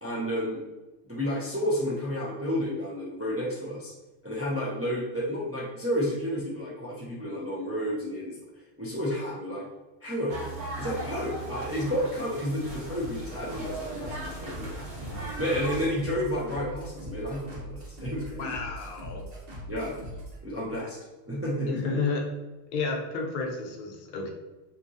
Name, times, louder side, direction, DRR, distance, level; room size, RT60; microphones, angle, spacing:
voice 1, 0.0-0.6 1.0-3.9 4.2-8.4 8.8-9.6 10.0-10.4 10.8-14.8 15.4-18.6 19.7-19.9 20.4-21.0 21.3-22.0, equal, 20° right, -5 dB, 0.4 m, -31 dB
sound 1, 10.3-15.9, right 2 dB, 75° right, 1.3 m, -38 dB
sound 2, 12.7-20.4, equal, 60° right, 1.3 m, -41 dB
voice 2, 18.4-19.2 21.7-22.2 22.7-24.3, left 4 dB, 55° left, 0 dB, 0.7 m, -31 dB
2.9 x 2.7 x 3.6 m, 1.1 s
omnidirectional pair, 1.1 m